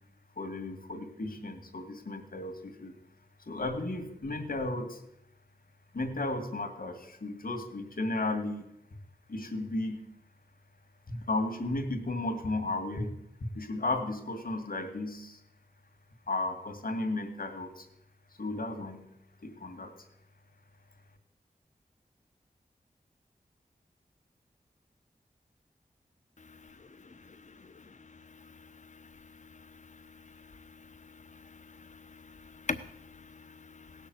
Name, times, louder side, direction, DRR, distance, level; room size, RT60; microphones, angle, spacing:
voice 1, 0.4-3.0 3.5-5.0 5.9-8.6 9.3-10.1 11.1-15.4 16.3-17.9 18.4-19.1 19.4-19.9, left 2 dB, 70° left, 5 dB, 2.3 m, -34 dB
voice 2, 31.8-34.1, left 4 dB, 55° left, 12 dB, 1.0 m, -41 dB
17.5 x 6.7 x 7.9 m, 0.81 s
wide cardioid pair, 85°, 15 cm